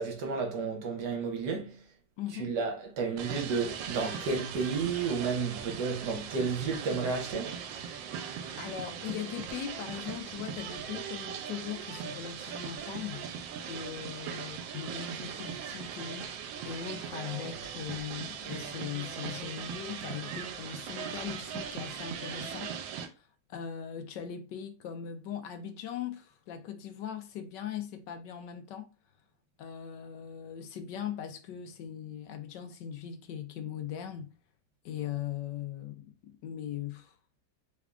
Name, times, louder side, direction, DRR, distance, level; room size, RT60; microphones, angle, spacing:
voice 1, 0.0-1.8 2.4-7.6, right 5 dB, 70° right, 1.4 m, -32 dB
voice 2, 2.2-2.5 8.3-13.3 13.7-16.3 16.6-28.9 29.6-34.3 34.8-37.2, left 9 dB, 75° left, 1.2 m, -40 dB
sound 1, 3.2-23.1, right 7 dB, 85° right, 1.3 m, -39 dB
3.6 x 3.4 x 2.4 m
omnidirectional pair, 2.0 m